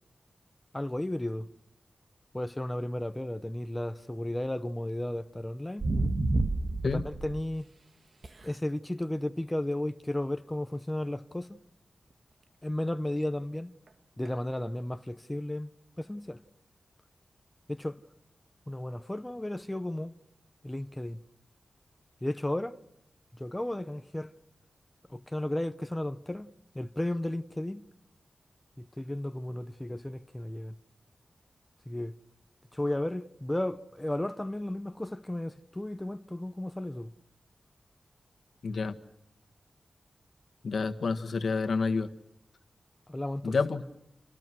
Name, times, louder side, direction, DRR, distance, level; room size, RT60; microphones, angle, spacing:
voice 1, 0.7-1.5 2.3-5.9 6.8-7.6 8.4-11.6 12.6-13.7 14.2-15.7 16.0-16.4 17.7-18.0 18.7-20.1 20.6-21.2 22.2-22.8 23.3-24.3 25.1-26.5 26.7-27.9 28.8-30.8 31.9-32.1 32.7-37.1 43.1-43.6, left 1 dB, 10° left, 0.9 m, -34 dB
sound 1, 5.8-7.4 8.2-8.4 14.2-14.3, right 2 dB, 45° right, 1.8 m, -29 dB
voice 2, 38.6-38.9 40.6-42.1 43.4-43.8, left 4 dB, 70° left, 1.6 m, -29 dB
30.0 x 26.5 x 6.2 m
wide cardioid pair, 135°, 0 cm